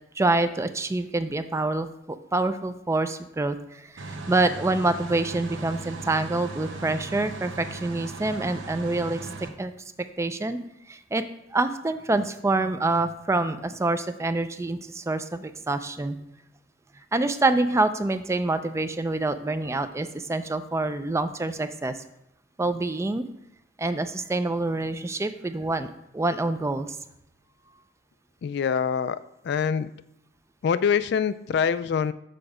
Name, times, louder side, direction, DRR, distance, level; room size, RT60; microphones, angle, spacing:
voice 1, 0.2-9.2 9.6-9.7 10.2-10.6 10.9-11.2 11.5-16.2 17.1-22.0 22.6-23.2 23.8-27.0, right 2 dB, 15° right, 10 dB, 0.4 m, -26 dB
sound 1, 4.0-9.5, right 3 dB, 85° right, 0.9 m, -38 dB
voice 2, 28.4-29.9 30.6-32.1, left 7 dB, 60° left, 14 dB, 0.3 m, -25 dB
6.8 x 5.2 x 4.9 m, 0.81 s
head